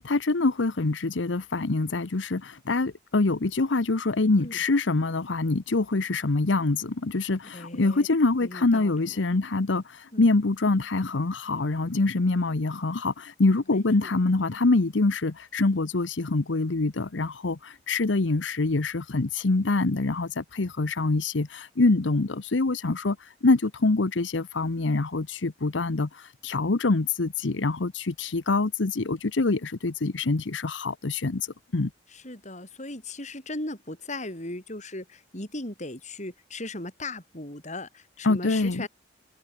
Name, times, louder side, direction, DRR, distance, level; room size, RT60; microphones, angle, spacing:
voice 1, 0.0-31.5 31.7-31.9 38.2-38.9, left 3 dB, 85° left, 0.9 m, -25 dB
voice 2, 7.5-8.1 8.4-9.1 10.1-10.3 13.7-14.1 32.1-38.9, left 2 dB, 40° left, 7.6 m, -37 dB
head